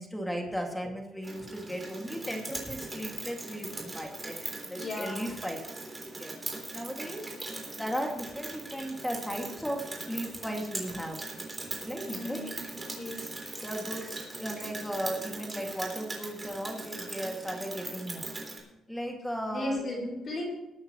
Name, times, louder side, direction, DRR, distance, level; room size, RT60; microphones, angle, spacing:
voice 1, 0.0-5.6 6.2-6.3 6.7-7.3 7.8-11.2 11.8-12.5 13.6-14.1 14.4-18.3 18.9-19.8, equal, 5° left, 2 dB, 2.2 m, -36 dB
Rain, 1.2-18.6, right 2 dB, 20° right, 3.5 m, -40 dB
voice 2, 4.7-5.3 12.0-12.6 12.8-13.3 19.5-20.4, left 1 dB, 45° left, -2 dB, 4.9 m, -36 dB
20.0 x 9.4 x 3.1 m, 0.98 s
cardioid pair, 90°, 0 cm